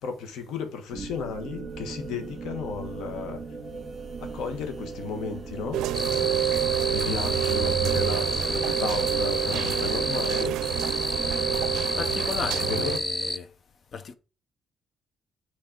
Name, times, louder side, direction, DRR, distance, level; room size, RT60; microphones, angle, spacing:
voice 1, 0.0-3.4 4.2-5.8 6.2-10.6 11.4-12.1 12.6-12.9, left 5 dB, 85° left, 1.3 m, -34 dB
sound 1, 0.9-12.9, right 4 dB, 40° right, 1.8 m, -39 dB
Rain, 5.7-13.0, right 12 dB, 90° right, 0.4 m, -28 dB
sound 2, 5.9-13.4, left 1 dB, 10° left, 0.3 m, -30 dB
voice 2, 12.0-13.5 13.9-14.1, left 5 dB, 50° left, 0.7 m, -35 dB
6.4 x 4.0 x 5.0 m
cardioid pair, 90°, 0 cm